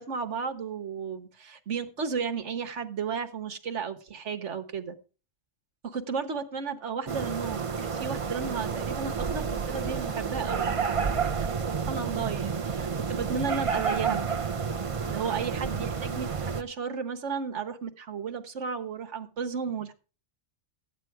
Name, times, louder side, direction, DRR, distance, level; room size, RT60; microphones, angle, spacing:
voice 1, 0.0-5.0 5.8-10.7 11.3-14.4 15.1-19.9, right 6 dB, 65° right, 8 dB, 1.5 m, -34 dB
sound 1, 7.1-16.6, right 6 dB, 30° right, 0.7 m, -30 dB
13.0 x 9.2 x 4.7 m, 0.36 s
omnidirectional pair, 1.4 m